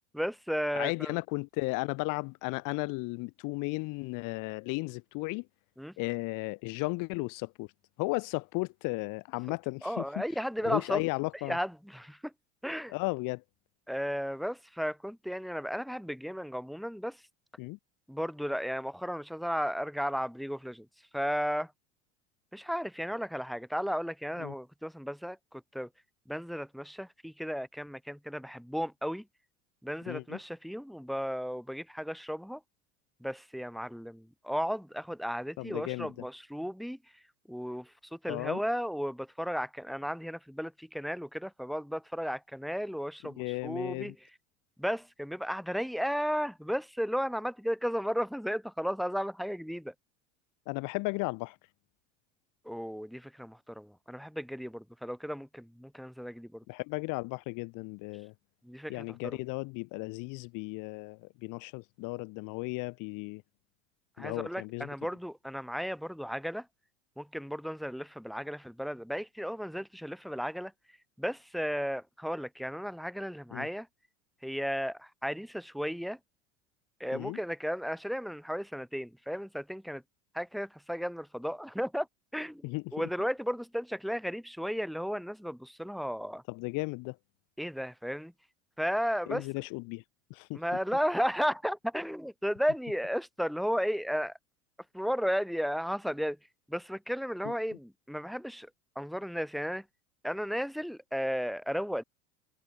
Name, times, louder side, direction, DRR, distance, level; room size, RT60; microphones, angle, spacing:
voice 1, 0.1-1.2 5.8-5.9 9.8-11.1 11.4-12.3 12.6-12.9 13.9-17.2 18.1-20.9 21.1-21.7 22.5-25.9 26.3-29.2 29.8-32.6 33.2-37.0 37.5-44.2 44.8-49.9 52.6-56.6 58.6-59.0 64.2-66.7 67.2-70.7 71.2-73.9 74.4-76.2 77.0-80.0 80.3-82.1 82.3-86.4 87.6-88.3 88.8-89.4 90.5-94.3 94.9-96.4 96.7-98.7 99.0-99.8 100.2-102.0, equal, ahead, 2.4 m, -34 dB
voice 2, 0.8-5.5 6.0-7.7 8.0-10.2 10.6-11.6 12.9-13.4 17.6-17.8 24.4-24.5 30.1-30.4 35.6-36.1 38.3-38.6 43.2-44.1 50.7-51.6 56.7-58.3 58.9-63.4 64.2-64.9 73.5-73.7 77.1-77.4 82.6-82.9 86.5-87.2 89.3-90.0 90.3-90.6 97.4-97.5, left 26 dB, 55° left, 2.5 m, -35 dB
hypercardioid pair, 85°, 37 cm